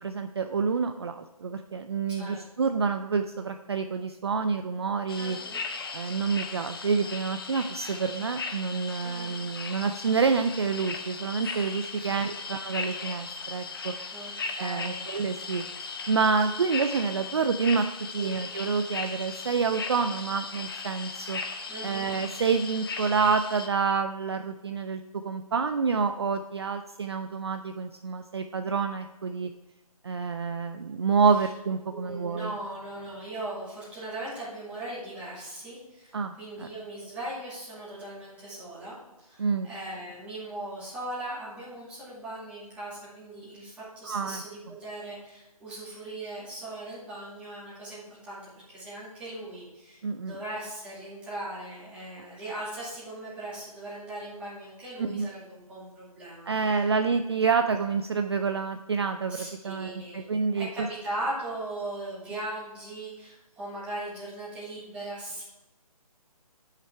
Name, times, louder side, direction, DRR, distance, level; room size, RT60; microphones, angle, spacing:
voice 1, 0.0-5.4 5.9-13.9 14.2-15.6 16.1-17.9 18.1-21.4 21.8-29.5 30.0-32.5 36.1-36.7 39.4-39.7 44.0-44.4 50.0-50.4 55.0-55.3 56.5-60.9, right 5 dB, 45° right, 7 dB, 0.4 m, -28 dB
voice 2, 2.1-2.4 5.2-5.6 9.0-9.4 11.9-12.2 14.1-15.1 18.2-18.3 21.7-22.1 31.4-31.5 31.9-56.9 59.3-60.2 60.5-65.4, right 1 dB, 5° right, -9 dB, 2.3 m, -39 dB
sound 1, 5.1-23.7, left 4 dB, 40° left, 0.7 m, -37 dB
9.3 x 5.7 x 4.5 m, 1.0 s
hypercardioid pair, 170°, 19 cm